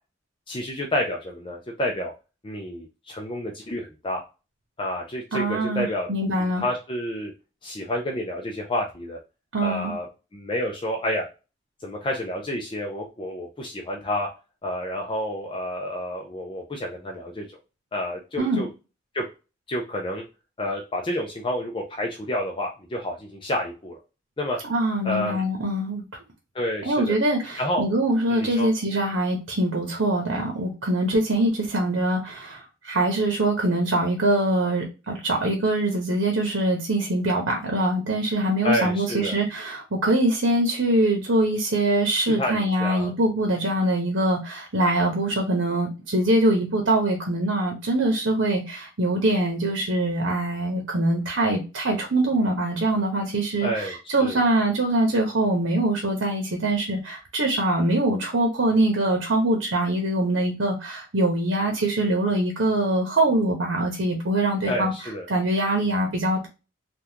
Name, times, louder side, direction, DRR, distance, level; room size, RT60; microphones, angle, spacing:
voice 1, 0.5-2.1 2.4-4.2 4.8-6.1 6.4-7.3 7.6-9.2 9.6-10.1 10.3-11.3 11.8-14.3 14.6-17.5 17.9-18.7 19.1-19.2 19.7-20.2 20.6-24.0 24.4-24.6 25.0-25.4 26.5-27.2 27.6-27.8 28.3-28.7 38.6-39.4 42.4-43.1 53.6-53.9 54.2-54.4 64.6-65.3, left 1 dB, 25° left, 0.5 m, -29 dB
voice 2, 5.3-6.6 9.5-10.0 18.4-18.6 24.6-26.0 26.9-64.9 65.3-66.5, right 1 dB, 80° right, 0.9 m, -23 dB
3.5 x 2.4 x 2.8 m
head